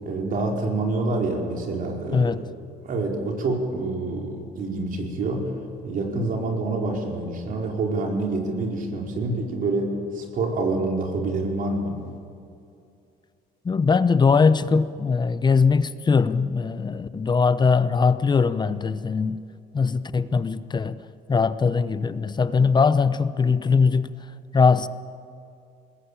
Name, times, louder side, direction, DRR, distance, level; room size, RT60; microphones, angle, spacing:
voice 1, 0.0-2.3 2.8-5.5 5.8-12.0, right 2 dB, 55° right, 4.9 m, -27 dB
voice 2, 2.1-2.4 13.6-19.4 19.7-21.0 21.3-24.1 24.5-24.9, left 5 dB, 25° left, 0.8 m, -21 dB
21.5 x 19.5 x 8.8 m
cardioid pair, 110°, 17 cm